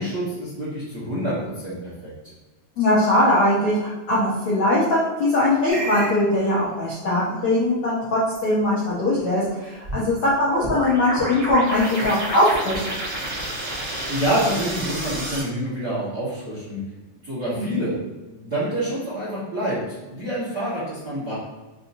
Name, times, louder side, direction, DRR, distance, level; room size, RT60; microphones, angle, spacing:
voice 1, 0.0-2.1 14.1-16.8 17.2-17.9 18.3-21.3, right 1 dB, 50° right, -11 dB, 1.1 m, -27 dB
voice 2, 2.8-12.8 17.5-17.8, left 1 dB, 85° left, -9 dB, 1.2 m, -21 dB
sound 1, 5.7-6.1 9.8-15.4, right 1 dB, 85° right, 0.6 m, -30 dB
5.5 x 2.9 x 2.7 m, 1.2 s
omnidirectional pair, 3.9 m